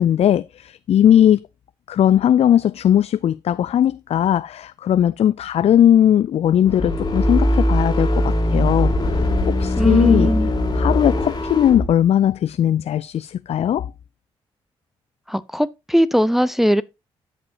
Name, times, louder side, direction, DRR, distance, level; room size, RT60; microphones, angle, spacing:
voice 1, 0.0-1.5 1.9-10.3 10.7-13.9, left 10 dB, 50° left, 0.4 m, -18 dB
sound 1, 6.6-11.9, left 1 dB, 30° left, 2.5 m, -20 dB
voice 2, 9.8-10.5 15.3-16.8, equal, ahead, 0.6 m, -19 dB
13.5 x 5.2 x 2.8 m
hypercardioid pair, 45°, 13 cm